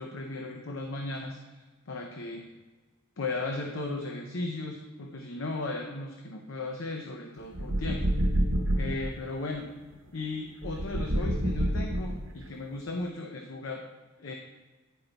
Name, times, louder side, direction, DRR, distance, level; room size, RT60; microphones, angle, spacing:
voice 1, 0.0-1.4 1.9-2.6 3.2-8.1 8.8-9.7 10.1-13.8 14.2-14.3, left 2 dB, 80° left, 3 dB, 0.7 m, -36 dB
sound 1, 7.5-9.1 10.6-12.5, right 1 dB, 75° right, 0.8 m, -28 dB
10.0 x 4.4 x 3.9 m, 1.2 s
head